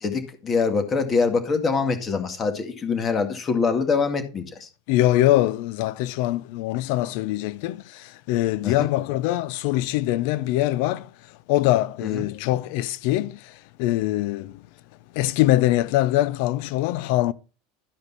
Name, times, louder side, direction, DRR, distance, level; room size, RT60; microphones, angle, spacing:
voice 1, 0.0-4.7 8.6-8.9 12.0-12.3, left 4 dB, 25° left, 2.0 m, -24 dB
voice 2, 4.9-7.8 8.3-11.0 11.5-13.3 13.8-14.5 15.2-17.3, left 15 dB, 65° left, 0.6 m, -22 dB
12.5 x 5.2 x 4.1 m
supercardioid pair, 130°, 0 cm